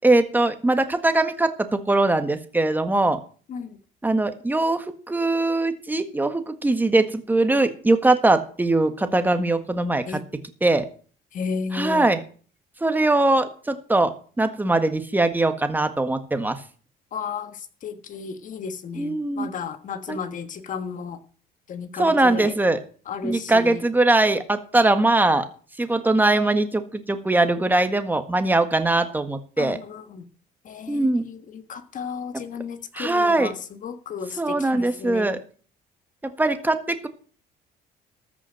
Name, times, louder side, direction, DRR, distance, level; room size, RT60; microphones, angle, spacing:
voice 1, 0.0-3.2 4.0-10.2 10.6-10.9 11.7-12.2 12.8-16.6 19.0-19.5 20.1-20.2 22.0-22.8 23.2-25.4 25.8-29.8 30.9-31.2 32.9-33.5 34.4-35.4 36.4-37.1, right 2 dB, 10° right, 8 dB, 1.6 m, -21 dB
voice 2, 11.3-12.1 17.1-21.2 21.7-22.5 23.1-23.8 29.6-30.3 30.6-35.3, left 6 dB, 50° left, 10 dB, 1.5 m, -33 dB
14.0 x 6.3 x 7.6 m, 0.42 s
cardioid pair, 110°, 17 cm